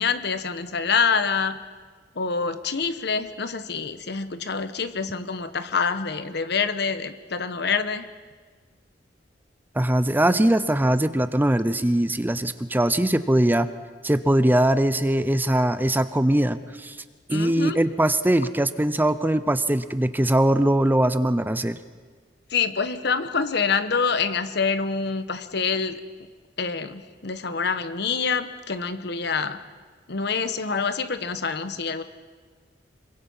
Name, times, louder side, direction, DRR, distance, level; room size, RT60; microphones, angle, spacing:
voice 1, 0.0-1.6 2.1-8.1 17.3-17.8 22.5-26.0 26.6-29.6 30.1-32.0, left 5 dB, 65° left, 11 dB, 1.2 m, -26 dB
voice 2, 9.7-13.7 14.0-17.0 17.3-21.8, right 1 dB, 10° right, 12 dB, 0.7 m, -21 dB
26.5 x 23.5 x 5.6 m, 1.5 s
head